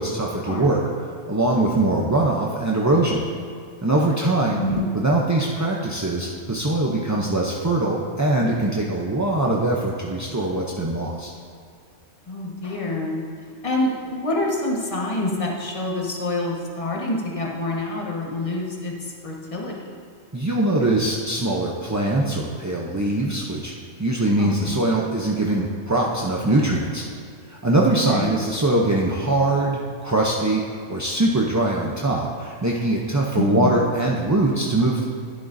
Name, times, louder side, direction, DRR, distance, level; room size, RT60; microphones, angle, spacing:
voice 1, 0.0-3.2 3.8-4.6 4.9-11.3 20.3-23.7 24.0-27.0 27.5-30.6 30.9-35.0, right 2 dB, 25° right, -3 dB, 0.4 m, -22 dB
voice 2, 4.5-4.8 12.3-13.2 13.6-19.8 24.4-24.8 28.0-28.4 33.3-33.7, left 2 dB, 30° left, -3 dB, 1.4 m, -27 dB
11.0 x 11.0 x 2.6 m, 2.3 s
omnidirectional pair, 1.3 m